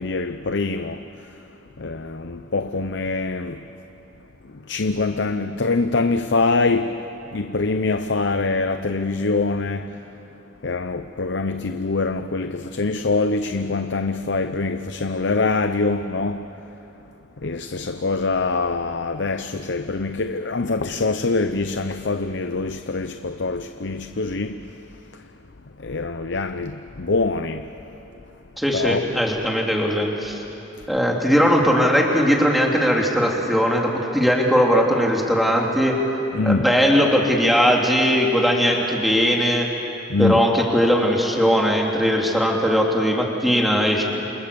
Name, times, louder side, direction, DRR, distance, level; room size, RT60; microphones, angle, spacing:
voice 1, 0.0-1.4 1.8-3.6 4.5-7.0 7.3-10.0 10.6-16.5 17.4-24.7 25.8-27.7 28.7-29.1 36.3-36.7 40.1-40.4, left 3 dB, 65° left, 0.8 m, -24 dB
voice 2, 28.6-30.4 30.9-36.0 36.4-39.7 40.2-44.0, equal, ahead, 3.2 m, -19 dB
29.0 x 26.5 x 7.1 m
head